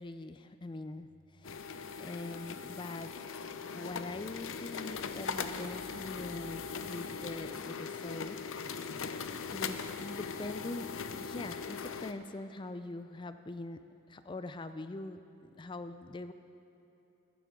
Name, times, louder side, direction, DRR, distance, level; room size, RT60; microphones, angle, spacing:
voice 1, 0.0-1.6 2.0-3.1 3.7-8.4 9.5-10.9 11.2-13.8 14.1-16.3, left 2 dB, 20° left, 10 dB, 0.4 m, -43 dB
sound 1, 1.4-12.1, left 5 dB, 70° left, 0.6 m, -40 dB
15.5 x 14.0 x 3.8 m, 2.9 s
head